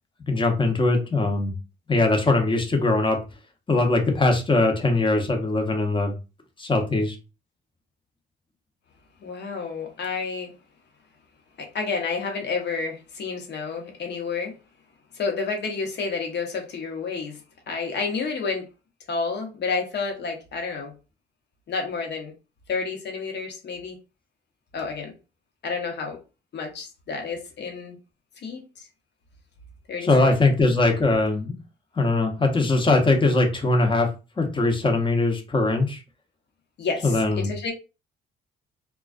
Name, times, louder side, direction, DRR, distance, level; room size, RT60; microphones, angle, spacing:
voice 1, 0.3-1.5 1.9-3.2 3.7-6.1 6.6-7.2 30.0-31.5 32.0-34.1 34.4-36.0 37.0-37.5, left 2 dB, 25° left, 0.7 m, -21 dB
voice 2, 9.2-10.5 11.6-14.6 15.1-17.4 17.7-18.7 19.1-20.9 21.7-22.3 22.7-24.0 24.7-25.1 25.6-26.2 26.5-27.9 28.4-28.9 29.9-30.4 36.8-37.7, left 4 dB, 60° left, 0.9 m, -30 dB
2.3 x 2.2 x 2.4 m
cardioid pair, 90°, 20 cm